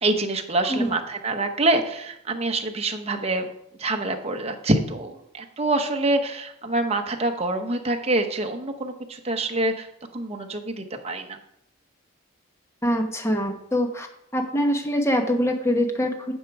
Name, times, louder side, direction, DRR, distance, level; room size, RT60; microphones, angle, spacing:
voice 1, 0.0-3.5 3.8-9.9 10.1-11.4, right 2 dB, 30° right, 5 dB, 1.0 m, -26 dB
voice 2, 12.8-14.1 14.3-16.3, equal, 15° left, 5 dB, 1.1 m, -24 dB
9.5 x 7.3 x 4.8 m, 0.76 s
head